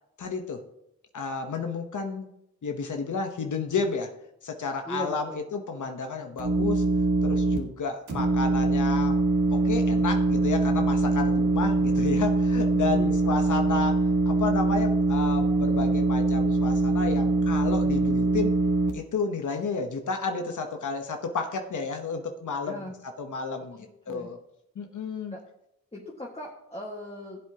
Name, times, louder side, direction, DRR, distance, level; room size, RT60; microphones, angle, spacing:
voice 1, 0.2-0.6 1.1-2.3 2.6-4.1 4.4-6.8 7.2-9.2 9.5-18.6 18.9-24.4 24.7-25.3, left 4 dB, 90° left, 4 dB, 1.0 m, -31 dB
voice 2, 4.8-5.4 12.8-13.3 22.6-22.9 23.7-24.3 25.3-25.4 25.9-27.4, equal, 20° left, -3 dB, 1.7 m, -38 dB
sound 1, 6.4-7.6 8.1-18.9, right 2 dB, 75° right, 1.6 m, -23 dB
16.0 x 7.8 x 2.9 m, 0.80 s
cardioid pair, 70°, 29 cm